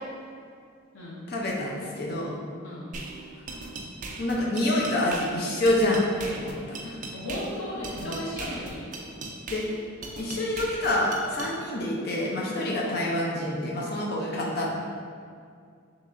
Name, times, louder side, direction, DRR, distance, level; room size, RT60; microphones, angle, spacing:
voice 1, 1.3-2.3 4.2-6.5 6.8-7.0 8.0-8.2 9.5-9.6 10.1-14.7, left 1 dB, 50° left, -3 dB, 0.6 m, -27 dB
sound 1, 2.9-11.5, right 3 dB, 40° right, 0.4 m, -39 dB
voice 2, 7.1-9.0 12.8-13.0 14.3-14.7, left 1 dB, 85° left, -6 dB, 1.2 m, -36 dB
6.5 x 3.0 x 2.6 m, 2.2 s
head